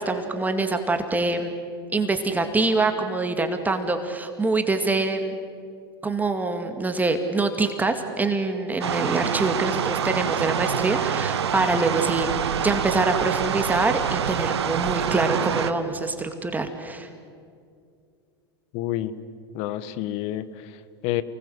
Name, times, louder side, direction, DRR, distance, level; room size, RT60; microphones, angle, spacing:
voice 1, 0.0-1.5 1.9-5.4 6.0-17.1, right 3 dB, 10° right, 6 dB, 2.3 m, -25 dB
sound 1, 8.8-15.7, right 8 dB, 80° right, 1.5 m, -26 dB
voice 2, 18.7-19.2 19.5-21.2, left 13 dB, 50° left, 14 dB, 1.5 m, -29 dB
29.0 x 21.0 x 8.1 m, 2.3 s
hypercardioid pair, 100°, 14 cm